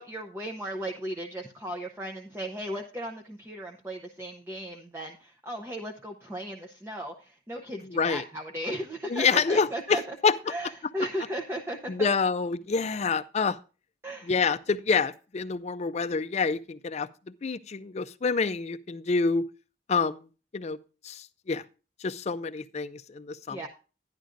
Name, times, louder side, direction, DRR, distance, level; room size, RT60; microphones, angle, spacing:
voice 1, 0.0-10.1 10.5-12.1 14.0-14.3 23.5-23.7, right 1 dB, 15° right, 0.7 m, -36 dB
voice 2, 7.8-8.2 9.1-10.4 11.9-13.6 14.2-17.1 17.4-19.5 19.9-20.3 20.5-20.8 21.0-21.6 22.0-23.6, left 5 dB, 35° left, 0.4 m, -27 dB
11.5 x 10.5 x 2.5 m
head